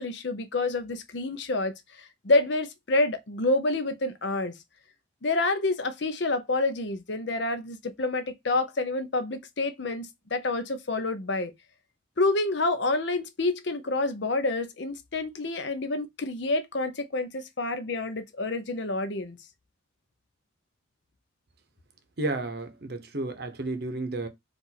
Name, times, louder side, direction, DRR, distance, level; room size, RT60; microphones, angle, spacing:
voice 1, 0.0-1.7 2.2-4.5 5.2-11.5 12.2-19.4, left 2 dB, 60° left, 0.8 m, -28 dB
voice 2, 22.2-24.3, right 2 dB, 55° right, 0.8 m, -32 dB
4.5 x 2.5 x 4.1 m
head